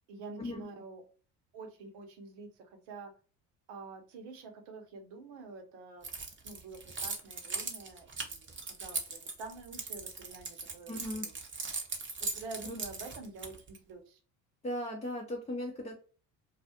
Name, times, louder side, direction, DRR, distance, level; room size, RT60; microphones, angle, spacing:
voice 1, 0.1-1.0 1.5-3.1 3.7-6.1 6.4-8.5 8.8-11.3 12.2-14.2, right 4 dB, 70° right, 5 dB, 0.9 m, -47 dB
Keys jangling, 6.0-13.8, right 4 dB, 25° right, 0.8 m, -39 dB
voice 2, 10.9-11.3 12.6-12.8 14.6-16.0, left 1 dB, 15° left, -1 dB, 0.5 m, -37 dB
2.3 x 2.3 x 2.7 m, 0.38 s
hypercardioid pair, 65°, 44 cm